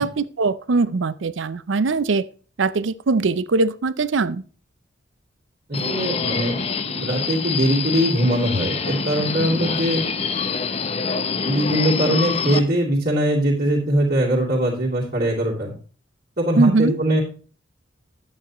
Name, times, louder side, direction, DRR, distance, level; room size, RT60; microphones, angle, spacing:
voice 1, 0.0-2.3 2.6-4.4 16.6-17.0, right 3 dB, 75° right, 17 dB, 0.5 m, -21 dB
Subway metro underground, 5.7-12.6, left 5 dB, 30° left, 0.6 m, -26 dB
voice 2, 5.7-10.0 11.4-15.7 16.4-17.2, right 1 dB, 50° right, -9 dB, 2.8 m, -21 dB
10.5 x 8.8 x 3.0 m, 0.39 s
head